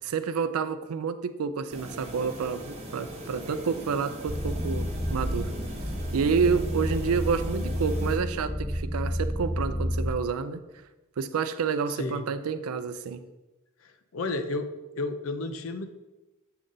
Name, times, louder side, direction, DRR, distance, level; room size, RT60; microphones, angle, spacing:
voice 1, 0.0-5.5 6.1-10.6 11.2-13.2, right 6 dB, 85° right, 12 dB, 0.4 m, -29 dB
sound 1, 1.7-8.2, right 1 dB, 30° right, 1.1 m, -40 dB
sound 2, 4.3-10.1, equal, ahead, 0.3 m, -30 dB
voice 2, 12.0-12.3 13.8-14.7 15.0-15.9, left 2 dB, 70° left, 8 dB, 0.5 m, -32 dB
7.8 x 3.8 x 3.8 m, 1.1 s
head